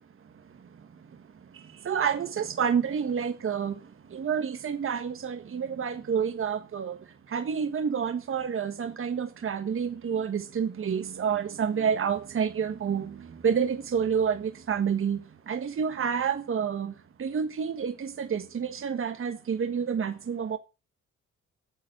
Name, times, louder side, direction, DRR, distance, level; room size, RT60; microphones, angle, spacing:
voice 1, 1.8-3.8 4.1-7.0 7.3-15.2 15.5-16.9 17.2-20.6, right 7 dB, 45° right, 1.5 m, -29 dB
9.4 x 7.2 x 8.0 m
cardioid pair, 90°, 30 cm